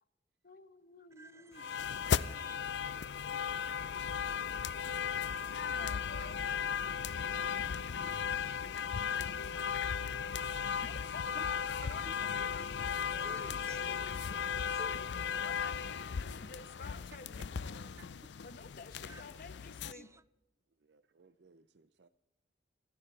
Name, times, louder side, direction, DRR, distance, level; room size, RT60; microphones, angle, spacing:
voice 1, 0.4-1.8 5.5-6.5 10.8-13.0 15.4-17.9 18.4-20.2, left 4 dB, 50° left, 1.1 m, -51 dB
voice 2, 1.2-1.8 2.1-2.6 5.3-5.5 6.2-6.5 8.2-9.2 9.8-9.9 10.3-10.8 12.1-12.2 13.1-15.0 19.1-19.2 19.9-20.2, right 2 dB, 15° right, 0.5 m, -55 dB
sound 1, 1.6-19.9, left 7 dB, 70° left, 0.5 m, -36 dB
voice 3, 5.7-6.9 11.8-11.9 18.0-18.1 20.8-22.1, right 6 dB, 65° right, 0.6 m, -57 dB
27.5 x 14.5 x 3.3 m
head